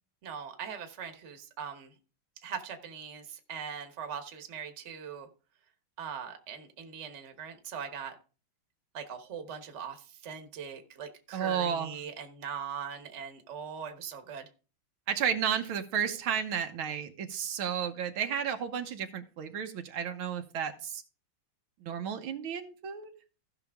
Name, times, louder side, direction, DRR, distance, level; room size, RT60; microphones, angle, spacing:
voice 1, 0.2-1.9 2.4-5.3 6.0-8.1 8.9-14.5, right 7 dB, 40° right, 6 dB, 1.3 m, -41 dB
voice 2, 11.3-12.0 15.1-21.0 21.8-23.1, right 8 dB, 85° right, 6 dB, 1.8 m, -32 dB
15.5 x 5.9 x 3.5 m, 0.36 s
omnidirectional pair, 2.2 m